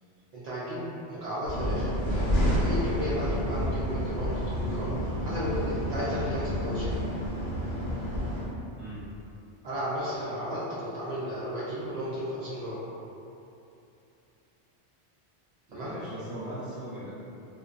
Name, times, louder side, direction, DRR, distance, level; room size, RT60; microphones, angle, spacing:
voice 1, 0.3-4.9 5.2-7.0 9.6-12.8 15.7-15.9, equal, 65° right, -9 dB, 0.4 m, -34 dB
sound 1, 1.4-8.4, equal, 90° left, 1.1 m, -29 dB
voice 2, 8.7-9.1 15.7-17.1, right 1 dB, 30° right, -12 dB, 0.9 m, -39 dB
2.5 x 2.2 x 2.4 m, 2.7 s
omnidirectional pair, 1.2 m